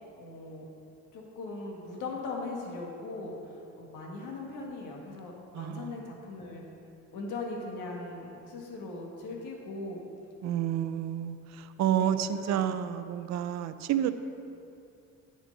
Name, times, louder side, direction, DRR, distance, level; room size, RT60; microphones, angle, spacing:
voice 1, 0.2-0.7 1.1-3.3 3.8-6.7 7.1-10.0 10.5-10.9 12.0-12.6, left 3 dB, 90° left, 0 dB, 1.6 m, -39 dB
voice 2, 5.5-6.0 10.4-14.1, right 10 dB, 65° right, 11 dB, 0.5 m, -30 dB
10.0 x 6.4 x 5.3 m, 2.6 s
cardioid pair, 90°, 30 cm